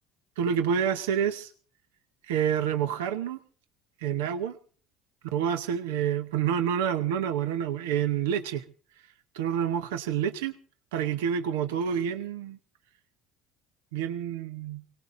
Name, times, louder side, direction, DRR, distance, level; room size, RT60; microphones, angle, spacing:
voice 1, 0.4-1.5 2.3-3.4 4.0-4.6 5.3-8.6 9.3-10.5 10.9-12.6 13.9-14.8, right 8 dB, 90° right, 9 dB, 0.9 m, -28 dB
24.0 x 18.0 x 2.7 m, 0.42 s
supercardioid pair, 90°, 0 cm